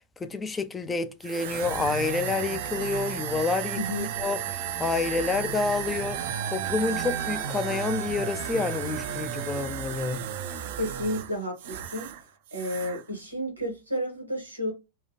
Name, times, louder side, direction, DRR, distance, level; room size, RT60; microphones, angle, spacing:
voice 1, 0.2-6.2 6.5-10.3, left 4 dB, 15° left, 0.3 m, -29 dB
sound 1, 1.2-12.2 12.5-13.0, right 9 dB, 55° right, 0.4 m, -33 dB
voice 2, 3.7-4.1 10.8-12.1 12.5-14.7, equal, 90° right, 1.3 m, -31 dB
2.9 x 2.3 x 2.7 m
figure-of-eight pair, 90°, 0 cm